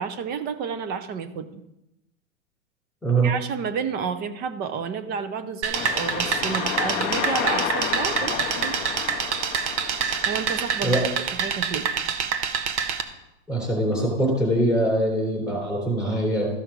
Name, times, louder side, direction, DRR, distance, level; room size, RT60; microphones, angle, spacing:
voice 1, 0.0-1.6 3.2-8.8 10.3-11.0 11.3-11.9, right 6 dB, 25° right, 11 dB, 0.7 m, -31 dB
sound 1, 5.6-13.0, right 6 dB, 60° right, 1.2 m, -27 dB
sound 2, 5.7-11.1, left 10 dB, 25° left, 0.5 m, -31 dB
voice 2, 13.5-16.5, right 1 dB, ahead, -2 dB, 3.7 m, -23 dB
13.5 x 5.8 x 5.1 m, 0.90 s
hypercardioid pair, 135°, 39 cm